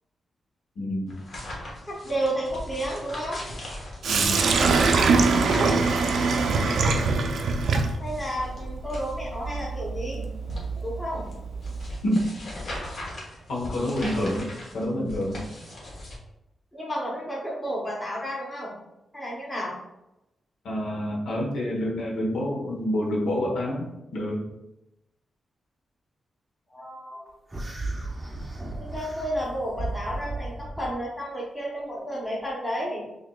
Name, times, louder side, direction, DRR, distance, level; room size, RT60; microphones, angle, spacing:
voice 1, 0.8-1.2 4.1-4.5 12.0-12.2 13.5-15.5 20.6-24.4, left 1 dB, 80° left, -2 dB, 1.1 m, -28 dB
sound 1, 1.1-16.2, left 1 dB, 45° left, 1.1 m, -40 dB
voice 2, 1.9-3.4 8.0-10.2 10.8-11.3 16.7-18.7 19.1-19.8 26.7-27.3 28.8-33.0, equal, 10° left, -4 dB, 0.9 m, -31 dB
Sink (filling or washing), 4.0-12.0, right 4 dB, 65° right, 0.4 m, -24 dB
sound 2, 27.5-30.9, right 2 dB, 15° right, 0.6 m, -34 dB
6.3 x 2.8 x 2.3 m, 0.91 s
wide cardioid pair, 165°, 0 cm